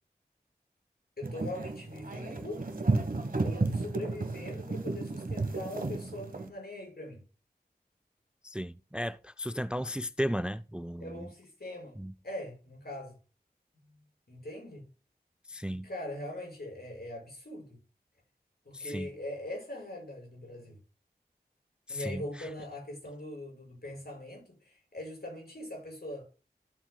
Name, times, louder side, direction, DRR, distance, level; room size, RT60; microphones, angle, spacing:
voice 1, 1.2-2.7 3.4-7.2 11.0-12.0 12.2-13.1 13.8-14.0 14.3-14.9 15.6-17.8 18.7-20.8 21.9-26.3, left 1 dB, 70° left, 5.6 m, -41 dB
sound 1, 1.2-6.5, right 3 dB, 60° right, 1.2 m, -33 dB
voice 2, 8.4-11.3 12.0-12.1 15.5-15.9 18.7-19.1 21.9-22.5, equal, 5° right, 0.3 m, -35 dB
13.5 x 7.5 x 2.3 m
wide cardioid pair, 55°, 17 cm